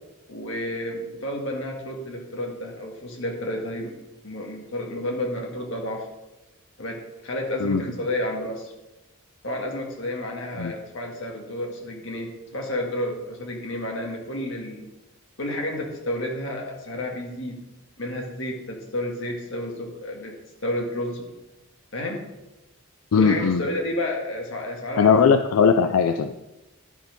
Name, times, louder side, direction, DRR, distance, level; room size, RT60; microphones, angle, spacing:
voice 1, 0.3-3.9 4.2-6.1 6.8-7.0 7.2-8.7 9.4-14.9 15.4-17.6 18.0-20.3 20.6-21.3 21.9-22.2 23.2-25.2, left 1 dB, 60° left, 0 dB, 1.8 m, -31 dB
voice 2, 23.1-23.6 25.0-26.4, left 6 dB, 85° left, 8 dB, 0.4 m, -19 dB
11.5 x 4.5 x 5.3 m, 0.99 s
head